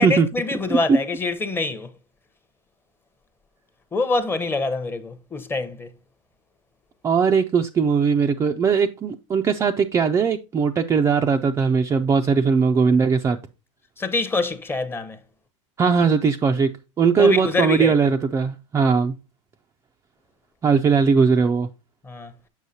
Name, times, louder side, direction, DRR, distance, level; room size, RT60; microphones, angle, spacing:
voice 1, 0.0-1.9 3.9-5.9 14.0-15.2 17.2-17.9 22.0-22.3, left 3 dB, 15° left, 0.8 m, -25 dB
voice 2, 7.0-13.4 15.8-16.7 17.0-19.2 20.6-21.7, right 5 dB, 15° right, 0.4 m, -19 dB
6.4 x 6.4 x 2.7 m
supercardioid pair, 130°, 17 cm